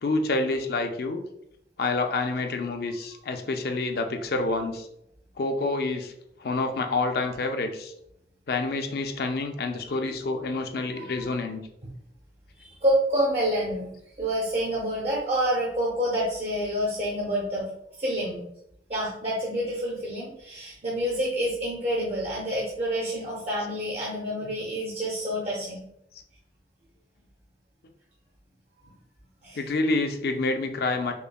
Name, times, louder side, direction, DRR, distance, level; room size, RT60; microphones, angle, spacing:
voice 1, 0.0-1.2 1.8-4.9 5.4-6.1 6.4-7.9 8.5-11.6 29.6-31.1, left 3 dB, 60° left, 6 dB, 0.4 m, -28 dB
voice 2, 10.9-11.4 11.8-11.9 12.6-13.9 14.2-17.7 18.0-18.5 18.9-25.9 29.4-29.6, equal, 35° right, -5 dB, 0.6 m, -28 dB
5.3 x 2.1 x 2.2 m, 0.76 s
head